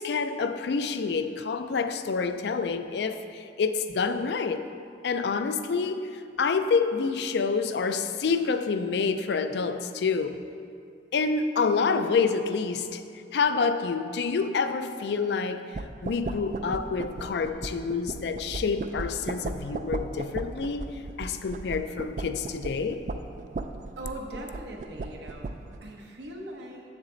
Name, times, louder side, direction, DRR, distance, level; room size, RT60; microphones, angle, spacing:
voice 1, 0.0-3.2 3.6-4.7 5.0-6.1 6.4-10.4 11.1-13.0 13.3-15.7 16.0-23.0, left 5 dB, 70° left, 0.4 m, -27 dB
sound 1, 15.7-25.8, right 3 dB, 45° right, 0.3 m, -37 dB
voice 2, 24.0-26.8, right 1 dB, 80° right, 1.0 m, -40 dB
7.4 x 7.2 x 3.8 m
head